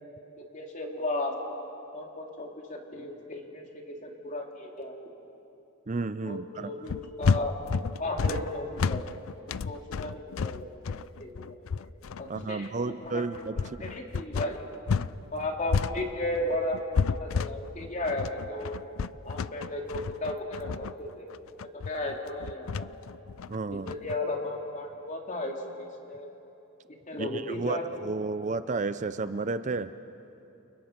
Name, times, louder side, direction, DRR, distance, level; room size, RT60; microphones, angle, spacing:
voice 1, 0.4-1.3 1.9-4.9 6.2-7.5 8.0-9.0 9.6-10.9 11.2-11.9 12.2-13.3 13.8-14.6 15.3-18.8 19.2-21.3 21.6-23.0 23.7-26.3 26.9-27.9, left 1 dB, 35° left, 1 dB, 3.1 m, -35 dB
voice 2, 5.9-6.7 12.3-13.6 23.5-23.9 27.2-29.9, right 3 dB, 35° right, 12 dB, 0.5 m, -32 dB
sound 1, 6.9-15.1 15.4-24.2, left 5 dB, 90° left, 0.5 m, -31 dB
29.5 x 29.0 x 6.0 m, 2.9 s
head